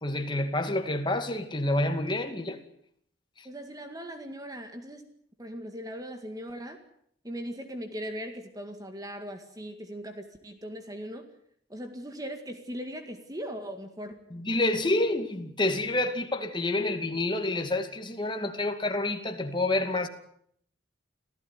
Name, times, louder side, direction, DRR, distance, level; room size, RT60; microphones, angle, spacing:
voice 1, 0.0-2.6 3.4-3.5 14.3-20.1, left 2 dB, 25° left, 2.4 m, -28 dB
voice 2, 3.4-5.0 5.4-6.8 7.2-11.2 11.7-14.2, equal, 20° right, 2.0 m, -39 dB
26.5 x 15.5 x 9.5 m
head